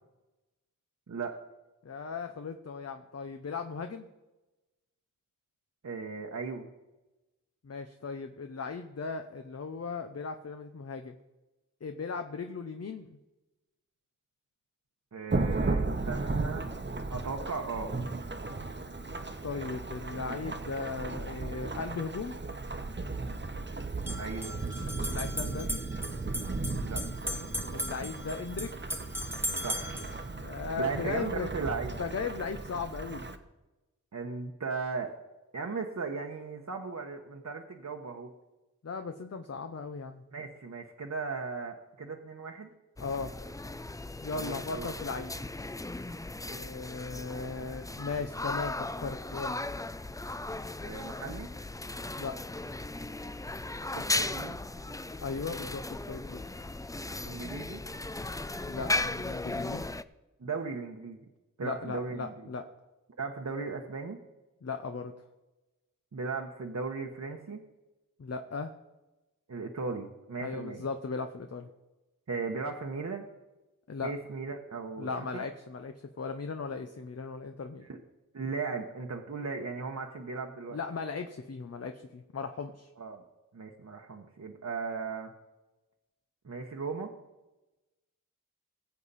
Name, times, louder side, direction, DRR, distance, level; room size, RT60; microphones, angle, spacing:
voice 1, 1.1-1.4 5.8-6.7 15.1-16.6 17.1-17.9 24.2-24.5 26.8-27.0 29.6-30.0 30.8-32.0 34.1-35.1 35.5-38.3 40.3-42.7 44.3-44.9 50.8-51.5 53.9-54.6 57.2-57.8 60.4-61.2 61.6-62.3 63.2-64.2 66.1-67.6 69.5-70.8 72.3-73.3 74.0-75.4 77.8-78.0 78.3-80.8 83.0-83.2 83.5-85.3 86.4-87.1, right 4 dB, 55° right, 1 dB, 1.1 m, -37 dB
voice 2, 1.8-4.1 7.6-11.1 11.8-13.2 19.4-22.4 25.0-25.8 27.7-28.7 30.4-31.5 32.0-33.3 38.8-40.2 43.0-43.3 44.2-45.4 46.5-49.6 52.2-52.4 55.2-56.4 58.7-59.8 61.6-62.6 64.6-65.1 68.2-68.7 70.4-71.7 73.9-74.1 75.0-77.9 80.7-82.9, left 4 dB, 50° left, 6 dB, 0.8 m, -37 dB
Thunderstorm / Rain, 15.3-33.4, right 3 dB, 35° right, 1.1 m, -35 dB
sound 1, 23.9-30.2, equal, 5° right, 1.2 m, -38 dB
sound 2, 43.0-60.0, left 2 dB, 10° left, 0.4 m, -37 dB
20.5 x 7.5 x 4.2 m, 1.1 s
wide cardioid pair, 60°, 33 cm